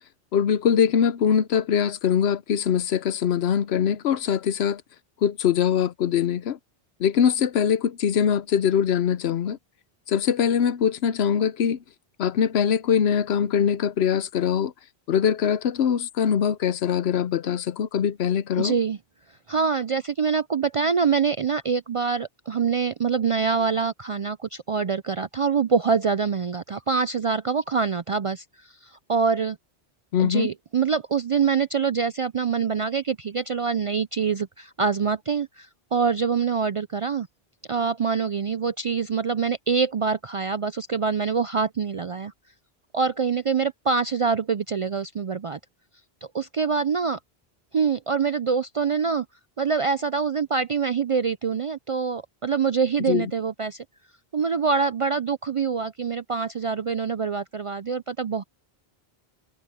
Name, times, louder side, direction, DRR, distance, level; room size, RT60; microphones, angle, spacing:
voice 1, 0.3-4.8 5.2-6.6 7.0-9.6 10.1-11.8 12.2-14.7 15.1-18.7 30.1-30.5 53.1-53.3, left 8 dB, 90° left, 1.0 m, -22 dB
voice 2, 18.6-19.0 19.5-29.6 30.2-37.3 37.7-42.3 42.9-45.6 46.3-47.2 47.7-49.3 49.6-53.8 54.3-58.4, right 5 dB, 55° right, 0.3 m, -25 dB
omnidirectional pair, 1.0 m